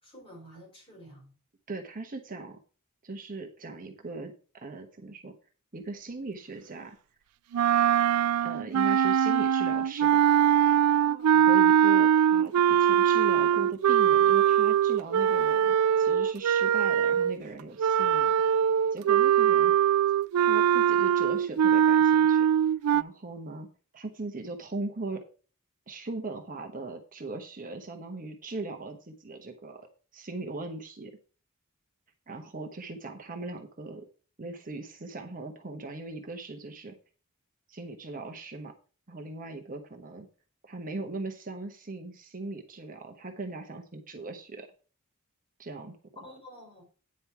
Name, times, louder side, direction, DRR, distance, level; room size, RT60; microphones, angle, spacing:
voice 1, 0.0-1.3 11.0-11.5 46.2-46.8, equal, 25° left, 5.2 m, -49 dB
voice 2, 1.7-2.6 3.0-5.3 5.7-7.0 8.4-10.7 11.3-18.3 18.9-19.8 20.4-22.5 22.9-23.7 23.9-25.2 25.9-29.8 30.1-31.1 32.3-34.0 34.4-37.0 37.7-38.7 39.1-40.3 40.6-44.7 45.6-46.0, right 3 dB, 40° right, 1.1 m, -39 dB
sound 1, 7.5-17.4 17.8-23.0, right 9 dB, 80° right, 0.3 m, -22 dB
9.6 x 5.4 x 5.7 m
head